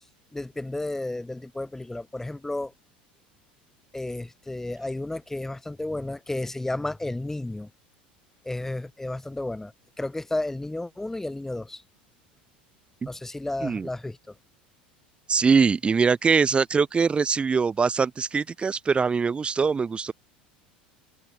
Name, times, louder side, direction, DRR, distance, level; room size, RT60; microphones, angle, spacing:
voice 1, 0.3-2.7 3.9-7.7 8.4-9.7 10.0-11.8 13.1-14.3, left 2 dB, 10° left, 5.0 m, -32 dB
voice 2, 15.3-20.1, right 5 dB, 20° right, 3.5 m, -22 dB
figure-of-eight pair, 75°, 5 cm